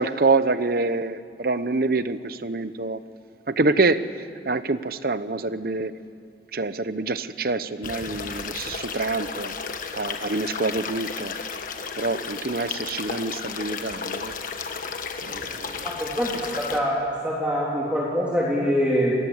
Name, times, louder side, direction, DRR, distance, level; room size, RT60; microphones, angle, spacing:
voice 1, 0.0-3.0 3.5-4.1 4.4-5.9 6.5-9.5 10.0-11.4 12.0-14.3 15.2-15.9, right 3 dB, 55° right, 13 dB, 0.9 m, -26 dB
sound 1, 7.8-16.8, left 5 dB, 50° left, 1.5 m, -33 dB
voice 2, 15.8-17.0 17.2-19.1, equal, 5° right, -5 dB, 3.3 m, -24 dB
28.0 x 19.5 x 8.1 m, 2.2 s
head